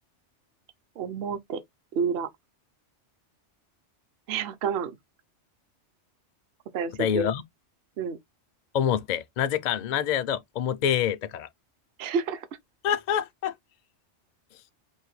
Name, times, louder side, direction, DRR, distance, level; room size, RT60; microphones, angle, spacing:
voice 1, 1.0-1.6 1.9-2.3 4.3-4.9 6.7-7.3 8.0-8.2 12.0-12.5, right 6 dB, 60° right, 0.8 m, -29 dB
voice 2, 7.0-7.4 8.7-11.5 12.8-13.5, left 9 dB, 65° left, 0.4 m, -26 dB
4.6 x 2.7 x 3.1 m
omnidirectional pair, 1.2 m